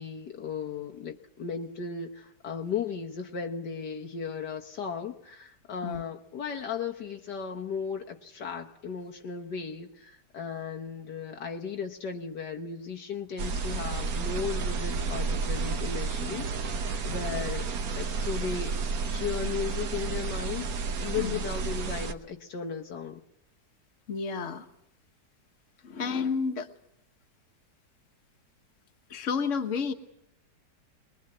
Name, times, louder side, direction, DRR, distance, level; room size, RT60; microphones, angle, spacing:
voice 1, 0.0-18.7 19.1-23.2, left 6 dB, 70° left, 2 dB, 1.7 m, -36 dB
sound 1, 13.4-22.1, right 4 dB, 60° right, 1.5 m, -31 dB
voice 2, 24.1-24.7 25.8-26.7 29.1-29.9, left 5 dB, 45° left, 5 dB, 1.6 m, -30 dB
22.0 x 21.0 x 7.9 m, 0.83 s
omnidirectional pair, 1.9 m